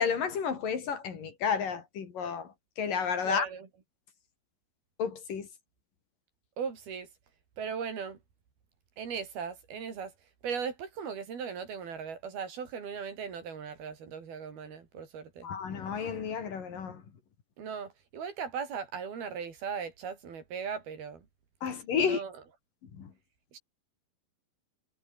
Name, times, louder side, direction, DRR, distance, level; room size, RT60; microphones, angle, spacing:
voice 1, 0.0-2.5 2.8-3.5 5.0-5.5 15.4-17.0 21.6-22.2 23.0-23.1, left 6 dB, 60° left, 4.7 m, -31 dB
voice 2, 3.2-3.7 6.6-7.1 7.6-8.2 9.0-10.1 10.4-15.5 17.6-21.3 22.0-22.4 23.5-23.6, right 6 dB, 75° right, 5.9 m, -38 dB
omnidirectional pair, 4.5 m